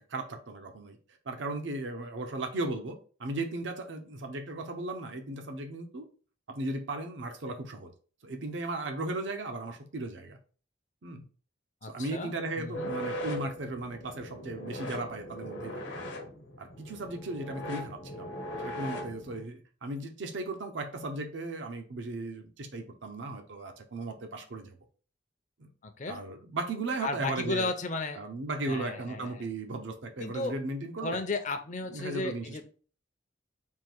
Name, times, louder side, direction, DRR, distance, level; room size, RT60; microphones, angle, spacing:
voice 1, 0.1-1.0 1.3-6.0 6.5-7.9 8.2-10.4 11.0-11.2 11.8-16.1 16.6-18.3 18.6-24.7 25.6-25.7 26.1-27.7 28.1-31.2 31.9-32.6, right 2 dB, 75° right, 0.7 m, -36 dB
voice 2, 11.8-12.9 25.8-26.2 27.0-28.2 28.6-29.4 30.2-30.5 31.0-32.6, left 3 dB, 40° left, 0.5 m, -34 dB
sound 1, 12.7-19.4, equal, 70° left, 1.0 m, -39 dB
3.6 x 2.5 x 4.5 m
head